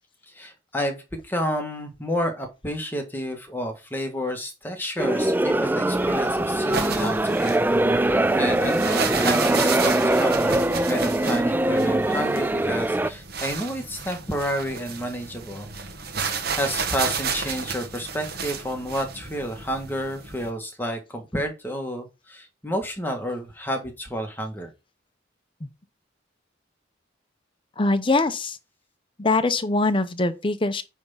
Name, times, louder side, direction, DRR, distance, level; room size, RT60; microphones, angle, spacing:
voice 1, 0.3-7.5 8.0-15.7 16.6-24.7, equal, 10° left, 1.6 m, -30 dB
sound 1, 5.0-13.1, right 1 dB, 10° right, 0.3 m, -22 dB
sound 2, 5.9-20.5, right 5 dB, 55° right, 1.4 m, -32 dB
voice 2, 27.8-28.6 29.2-30.8, left 2 dB, 25° left, 0.7 m, -22 dB
9.3 x 3.6 x 5.6 m
head